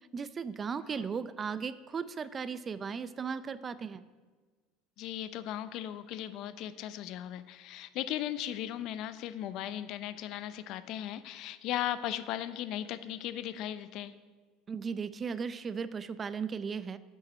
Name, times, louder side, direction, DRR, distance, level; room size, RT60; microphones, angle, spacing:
voice 1, 0.1-4.0 14.7-17.0, right 6 dB, 30° right, 15 dB, 0.4 m, -36 dB
voice 2, 5.0-14.1, left 12 dB, 60° left, 13 dB, 0.5 m, -37 dB
8.0 x 7.0 x 6.2 m, 1.4 s
supercardioid pair, 115°, 0 cm